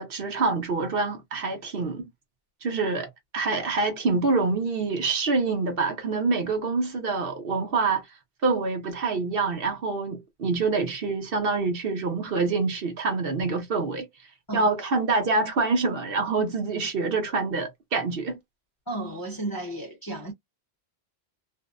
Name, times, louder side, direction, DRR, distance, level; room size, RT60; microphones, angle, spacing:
voice 1, 0.0-2.1 2.6-8.1 8.4-14.1 14.5-18.4, right 3 dB, 60° right, 0.9 m, -26 dB
voice 2, 18.9-20.3, right 2 dB, 25° left, 0.7 m, -33 dB
2.6 x 2.0 x 2.3 m
omnidirectional pair, 1.2 m